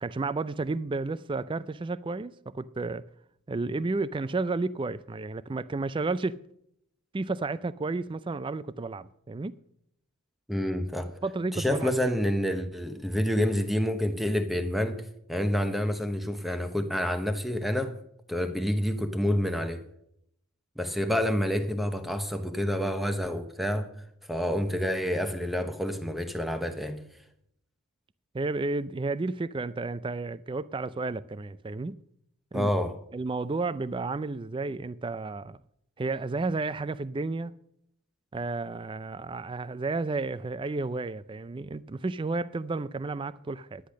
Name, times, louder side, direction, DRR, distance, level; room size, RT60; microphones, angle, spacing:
voice 1, 0.0-3.1 3.5-6.4 7.1-9.6 11.2-12.1 28.3-32.0 32.5-32.7 33.1-35.6 36.0-37.5 38.3-43.8, right 3 dB, 20° right, 0.3 m, -32 dB
voice 2, 10.5-11.1 11.5-15.0 15.3-17.9 18.3-19.8 20.8-23.9 24.3-27.0 32.5-32.9, equal, ahead, 0.9 m, -28 dB
10.5 x 10.0 x 6.3 m
head